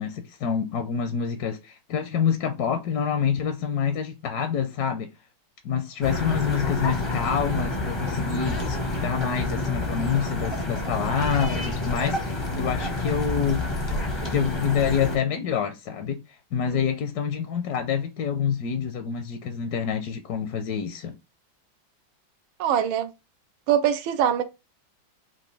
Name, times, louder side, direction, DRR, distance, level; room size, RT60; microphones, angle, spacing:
voice 1, 0.0-5.1 5.6-13.6 14.3-16.2 16.5-21.2, left 7 dB, 70° left, 1.0 m, -27 dB
sound 1, 6.0-15.2, left 2 dB, 35° left, 0.4 m, -28 dB
voice 2, 22.6-23.1 23.7-24.4, right 9 dB, 85° right, 1.5 m, -23 dB
6.1 x 2.5 x 3.2 m
omnidirectional pair, 2.2 m